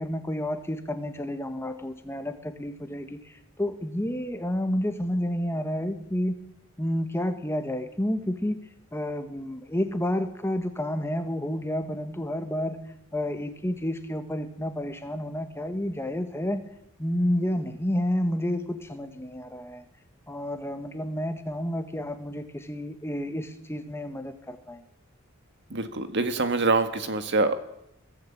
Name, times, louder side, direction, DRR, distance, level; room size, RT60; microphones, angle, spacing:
voice 1, 0.0-3.2 3.6-6.4 6.8-8.6 8.9-12.8 13.1-16.6 17.0-19.8 20.3-24.8, left 1 dB, 10° left, 7 dB, 1.7 m, -30 dB
voice 2, 25.7-27.6, right 3 dB, 60° right, 8 dB, 1.8 m, -25 dB
21.5 x 14.5 x 8.8 m, 0.84 s
head